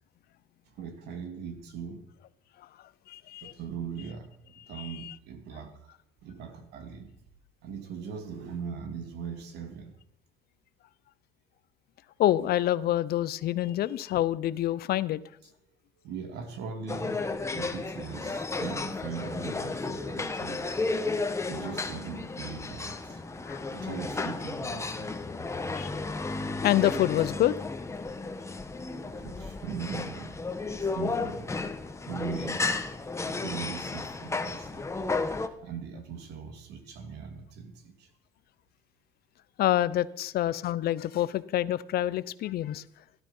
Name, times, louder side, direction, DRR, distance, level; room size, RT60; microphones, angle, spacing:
voice 1, 0.8-2.0 3.4-4.3 4.7-5.7 6.2-7.1 7.6-9.9 16.0-20.6 21.5-23.2 23.7-25.2 29.1-30.4 30.8-31.5 32.1-32.7 33.2-34.9 35.6-38.1, right 6 dB, 80° right, 7 dB, 2.9 m, -40 dB
voice 2, 3.1-3.5 4.6-5.1 12.2-15.2 23.5-23.6 25.7-25.9 26.6-27.5 39.6-42.8, left 13 dB, 65° left, 17 dB, 0.8 m, -27 dB
sound 1, 16.9-35.5, left 3 dB, 15° left, 1.4 m, -33 dB
17.5 x 12.0 x 5.6 m, 0.73 s
cardioid pair, 110°, 17 cm